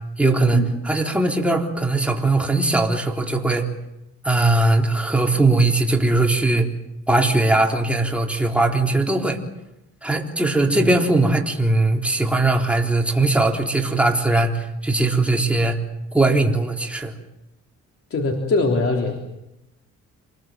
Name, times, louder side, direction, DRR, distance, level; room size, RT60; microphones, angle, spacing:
voice 1, 0.2-3.7 4.2-6.7 7.1-9.4 10.0-15.8 16.1-17.1, right 2 dB, 5° right, 1 dB, 3.8 m, -20 dB
voice 2, 18.1-19.2, left 3 dB, 50° left, 2 dB, 3.6 m, -22 dB
27.5 x 21.0 x 7.6 m, 0.90 s
cardioid pair, 90°, 30 cm